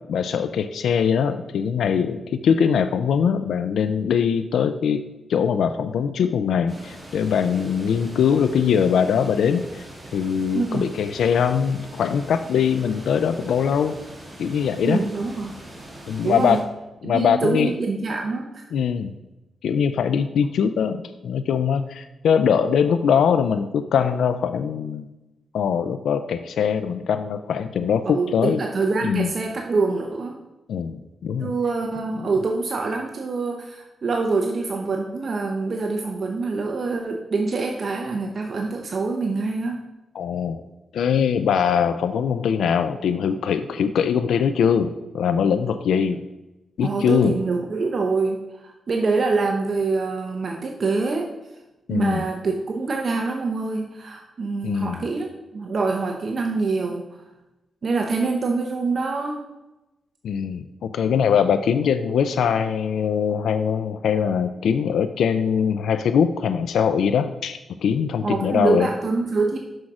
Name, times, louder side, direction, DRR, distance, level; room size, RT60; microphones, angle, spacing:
voice 1, 0.1-5.0 5.3-9.8 10.1-14.0 14.4-15.0 16.1-16.6 17.0-17.7 18.7-19.1 19.6-25.1 25.5-28.6 29.0-29.3 30.7-31.5 40.1-40.6 40.9-46.2 46.8-47.4 51.9-52.2 54.6-55.0 60.2-68.9, left 7 dB, 85° left, 10 dB, 0.3 m, -22 dB
sound 1, 6.7-16.6, right 1 dB, 15° right, 2.3 m, -42 dB
voice 2, 10.5-10.9 14.8-15.6 16.2-16.6 17.0-18.6 28.1-30.4 31.4-39.8 46.8-51.3 51.9-55.3 55.5-57.2 57.8-59.5 68.2-69.6, right 3 dB, 50° right, 3 dB, 0.7 m, -25 dB
6.2 x 6.1 x 4.8 m, 1.0 s
cardioid pair, 95°, 0 cm